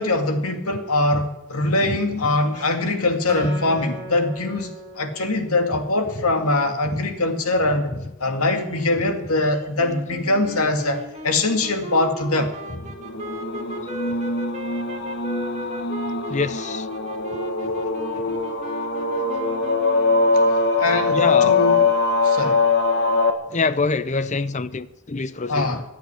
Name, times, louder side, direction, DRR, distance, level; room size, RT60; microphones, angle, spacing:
voice 1, 0.0-4.7 5.0-7.9 8.2-12.5 20.3-20.4 20.8-21.8 22.2-22.6 25.5-25.8, left 2 dB, 90° left, 2.2 m, -22 dB
voice 2, 1.6-2.0 5.7-5.8 6.9-7.0 7.9-8.0 12.9-13.0 16.3-16.9 21.1-21.6 23.5-25.8, left 4 dB, 35° left, 0.6 m, -26 dB
Acoustic guitar, 3.3-6.7, equal, 15° left, 3.6 m, -37 dB
sound 1, 9.8-20.5, equal, 30° right, 1.8 m, -36 dB
sound 2, 13.0-23.3, left 3 dB, 50° left, 1.5 m, -22 dB
15.5 x 9.2 x 9.8 m
head